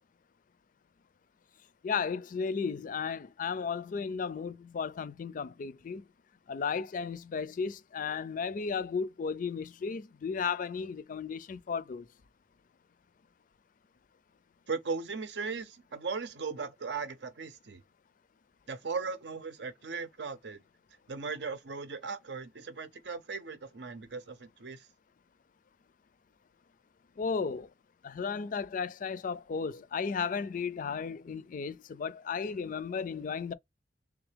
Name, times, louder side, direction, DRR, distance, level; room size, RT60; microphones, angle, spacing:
voice 1, 1.8-6.0 6.5-12.1 27.2-27.7 28.0-33.5, left 5 dB, 50° left, 0.4 m, -34 dB
voice 2, 14.7-17.8 18.7-20.6 21.1-24.9, right 4 dB, 70° right, 0.7 m, -38 dB
3.5 x 3.2 x 3.4 m
head